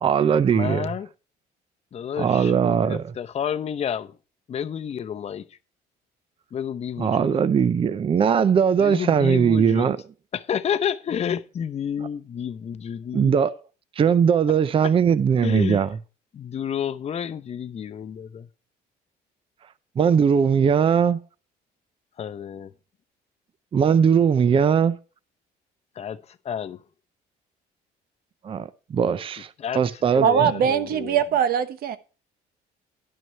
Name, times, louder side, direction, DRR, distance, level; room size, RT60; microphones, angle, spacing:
voice 1, 0.0-0.9 2.2-3.0 7.0-10.0 13.1-13.5 14.0-15.9 20.0-21.2 23.7-25.0 28.4-29.5 29.8-30.5, right 7 dB, 30° right, 0.5 m, -20 dB
voice 2, 0.5-1.1 1.9-4.2 4.5-5.6 6.5-7.3 8.8-9.9 10.3-13.3 14.8-14.9 15.4-15.8 16.3-18.5 22.2-22.7 25.9-26.8 29.6-31.2, left 8 dB, 40° left, 0.7 m, -30 dB
voice 3, 30.2-32.0, right 8 dB, 60° right, 1.1 m, -21 dB
11.0 x 6.1 x 5.6 m
cardioid pair, 110°, 17 cm